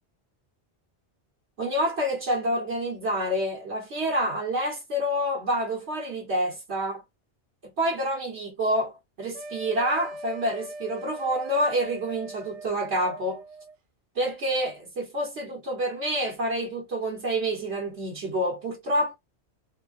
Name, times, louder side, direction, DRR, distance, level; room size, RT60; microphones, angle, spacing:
voice 1, 1.6-7.0 7.6-13.4 14.1-19.1, equal, 65° right, 1.4 m, -28 dB
sound 1, 9.3-13.7, right 1 dB, 85° right, 0.9 m, -41 dB
3.5 x 2.2 x 2.4 m
omnidirectional pair, 1.2 m